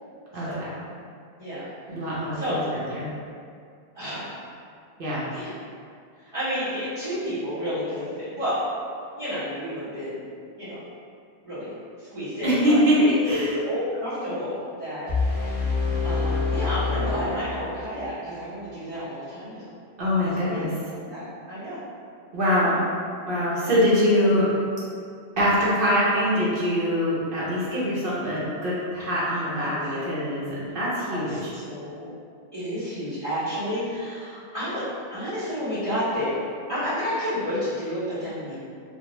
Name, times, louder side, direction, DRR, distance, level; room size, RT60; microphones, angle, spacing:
voice 1, 0.3-0.7 1.9-2.6 2.9-3.1 5.0-5.2 12.4-13.6 20.0-20.7 22.3-22.7 23.3-24.5 25.4-31.5, equal, 60° right, -8 dB, 0.8 m, -23 dB
voice 2, 3.9-4.4 5.3-5.5 6.3-8.6 9.2-10.2 10.6-10.8 11.4-11.7 12.0-13.2 13.5-15.7 16.0-19.7 20.2-20.6 20.9-21.8 22.6-22.8 23.6-23.7 28.0-28.1 29.6-30.1 31.1-32.1 32.5-34.8 35.1-36.4 36.7-38.6, equal, 30° right, -17 dB, 0.9 m, -31 dB
sound 1, 15.1-18.1, left 4 dB, 10° left, 0.8 m, -26 dB
2.3 x 2.2 x 2.9 m, 2.3 s
omnidirectional pair, 1.1 m